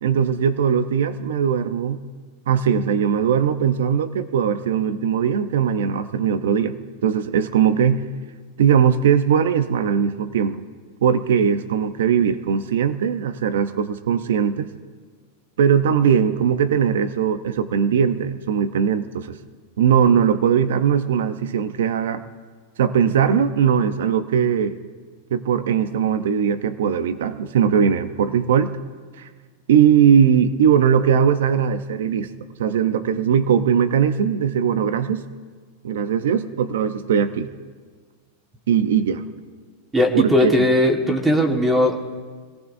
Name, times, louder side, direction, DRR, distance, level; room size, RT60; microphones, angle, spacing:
voice 1, 0.0-2.0 2.5-6.8 7.0-8.0 8.6-10.6 11.0-14.7 15.6-19.4 19.8-22.2 22.8-24.8 25.3-28.7 29.2-29.3 29.7-32.3 32.6-35.3 35.8-37.5 38.7-39.2 40.1-40.5, right 8 dB, 80° right, 10 dB, 0.8 m, -19 dB
voice 2, 39.9-42.0, left 1 dB, 10° right, 2 dB, 1.7 m, -18 dB
26.0 x 17.5 x 2.7 m, 1.6 s
supercardioid pair, 160°, 0 cm